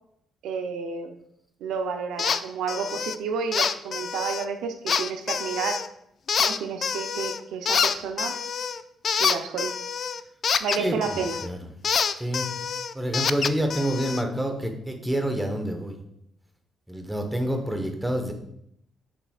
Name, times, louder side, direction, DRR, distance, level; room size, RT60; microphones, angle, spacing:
voice 1, 0.4-1.2 1.6-5.9 6.4-8.4 9.2-9.7 10.6-11.4, right 6 dB, 85° right, 6 dB, 0.5 m, -30 dB
sound 1, 2.2-2.4 2.7-3.2 3.5-4.4 4.9-5.9 6.3-7.4 7.7-11.5 11.8-14.2, left 6 dB, 50° left, 0.3 m, -26 dB
voice 2, 10.8-11.6 12.2-12.5 12.9-16.0 16.9-18.3, equal, 5° right, 4 dB, 1.1 m, -28 dB
6.9 x 5.8 x 2.4 m, 0.74 s
cardioid pair, 90°, 0 cm